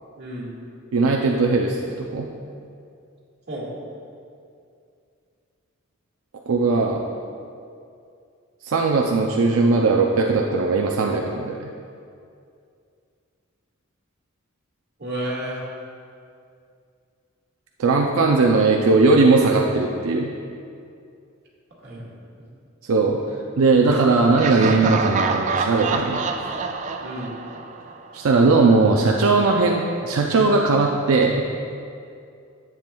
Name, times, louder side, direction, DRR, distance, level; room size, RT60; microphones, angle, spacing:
voice 1, 0.2-0.5 3.5-3.7 15.0-15.6 21.8-22.1 27.0-27.4, right 1 dB, 55° right, -5 dB, 1.8 m, -31 dB
voice 2, 0.9-2.3 6.5-7.0 8.6-11.7 17.8-20.3 22.8-23.2 23.6-26.2 28.1-31.3, right 3 dB, 90° right, 1 dB, 0.5 m, -19 dB
Laughter, 24.4-28.2, right 5 dB, 35° right, 0.4 m, -26 dB
10.5 x 7.7 x 2.3 m, 2.4 s
head